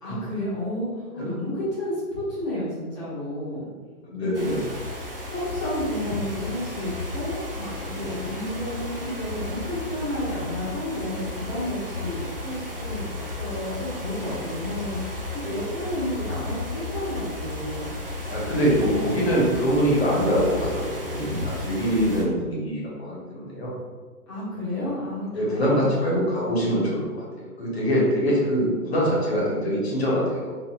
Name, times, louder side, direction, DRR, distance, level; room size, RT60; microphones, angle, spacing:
voice 1, 0.0-3.7 4.2-4.6 5.3-17.9 18.8-19.0 24.3-26.2, left 1 dB, 20° left, -11 dB, 1.2 m, -31 dB
voice 2, 4.0-4.6 7.9-8.1 15.4-15.5 18.3-23.7 24.7-24.9 25.3-27.0 27.4-30.5, equal, 45° left, -4 dB, 1.2 m, -24 dB
sound 1, 4.3-22.2, left 2 dB, 40° right, 0.4 m, -33 dB
3.8 x 2.9 x 2.3 m, 1.4 s
hypercardioid pair, 165°, 46 cm